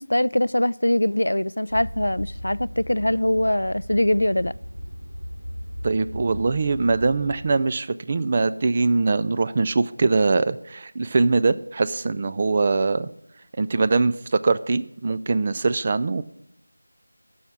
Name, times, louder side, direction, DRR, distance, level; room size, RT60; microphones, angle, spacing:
voice 1, 0.0-4.5, left 1 dB, 80° left, 0.3 m, -22 dB
sound 1, 1.7-7.5, equal, 80° right, 2.6 m, -36 dB
voice 2, 5.8-13.1 13.6-16.2, right 3 dB, 25° right, 0.4 m, -22 dB
12.5 x 5.7 x 6.1 m
figure-of-eight pair, 170°, 0 cm